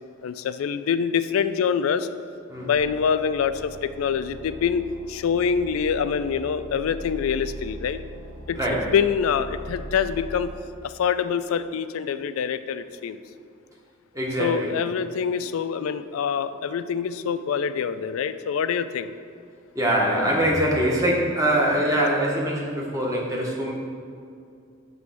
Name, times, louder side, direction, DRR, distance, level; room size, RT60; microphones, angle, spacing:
voice 1, 0.2-2.1 2.6-8.0 8.5-8.6 8.9-10.5 10.8-13.2 14.4-19.1, left 7 dB, 85° left, 12 dB, 0.3 m, -25 dB
sound 1, 2.7-10.5, right 1 dB, 60° right, 1.6 m, -40 dB
voice 2, 8.5-8.9 14.1-14.7 19.7-23.7, right 1 dB, 15° right, -3 dB, 1.0 m, -23 dB
7.6 x 3.1 x 6.0 m, 2.4 s
head